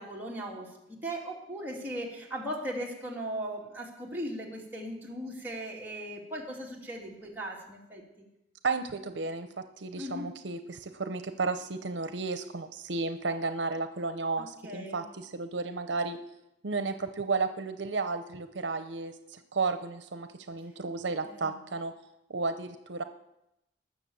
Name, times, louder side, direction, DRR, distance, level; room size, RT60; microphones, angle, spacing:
voice 1, 0.0-8.2 10.0-10.3 14.4-15.0 21.2-21.6, right 1 dB, 10° right, -4 dB, 2.9 m, -38 dB
voice 2, 8.6-9.5 9.8-16.2 16.6-21.9 22.3-23.0, right 4 dB, 75° right, 9 dB, 0.8 m, -33 dB
19.5 x 6.6 x 7.0 m, 0.89 s
head